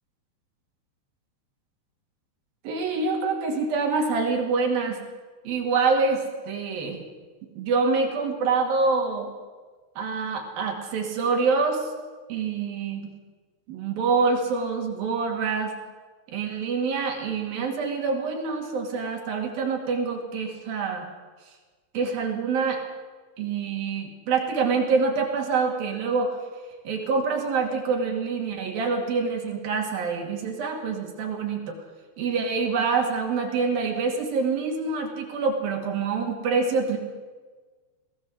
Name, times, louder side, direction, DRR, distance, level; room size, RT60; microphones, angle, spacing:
voice 1, 2.6-5.0 5.4-7.0 7.6-9.3 10.0-11.9 12.3-13.1 13.7-15.7 16.3-21.1 21.9-22.8 23.4-26.4 26.9-31.8 32.2-37.0, right 4 dB, 60° right, 2 dB, 3.8 m, -26 dB
21.0 x 17.0 x 7.6 m, 1.4 s
omnidirectional pair, 5.3 m